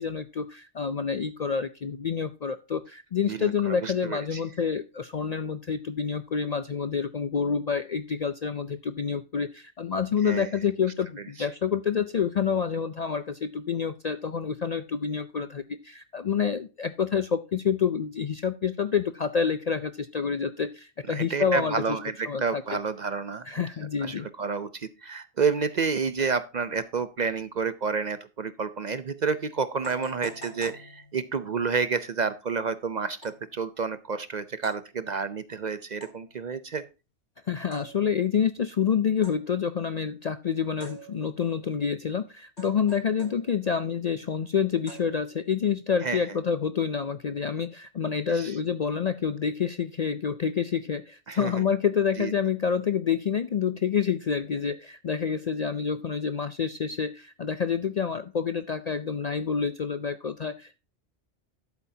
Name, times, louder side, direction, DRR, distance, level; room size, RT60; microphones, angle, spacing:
voice 1, 0.0-22.0 22.3-22.6 23.5-24.3 37.5-60.8, left 6 dB, 50° left, 12 dB, 0.5 m, -28 dB
voice 2, 3.3-4.4 10.2-10.5 21.1-23.6 24.0-36.8 46.0-46.2 48.3-48.5 51.3-51.5 52.2-52.3, right 5 dB, 50° right, 13 dB, 0.6 m, -30 dB
sound 1, 29.8-31.5 33.2-33.6 34.6-35.0 36.0-36.4 37.7-38.3 39.2-39.7 40.8-41.6 42.6-43.7 44.9-45.6, right 2 dB, 75° left, 4.1 m, -47 dB
11.0 x 8.3 x 2.7 m, 0.30 s
omnidirectional pair, 1.2 m